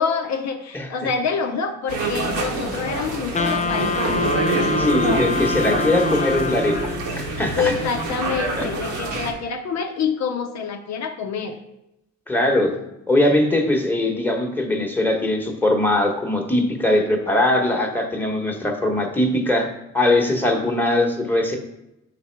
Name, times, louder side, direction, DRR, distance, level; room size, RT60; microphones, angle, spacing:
voice 1, 0.0-4.0 7.6-11.6, left 5 dB, 65° left, 4 dB, 0.7 m, -26 dB
sound 1, 1.9-9.3, right 3 dB, 90° right, 1.4 m, -26 dB
Wind instrument woodwind instrument, 3.3-7.2, left 5 dB, 25° left, 0.5 m, -25 dB
voice 2, 4.8-7.7 8.6-8.7 12.3-12.8 13.1-19.7 19.9-21.6, left 1 dB, 5° left, 1 dB, 1.1 m, -21 dB
5.8 x 4.2 x 4.5 m, 0.89 s
cardioid pair, 90°, 29 cm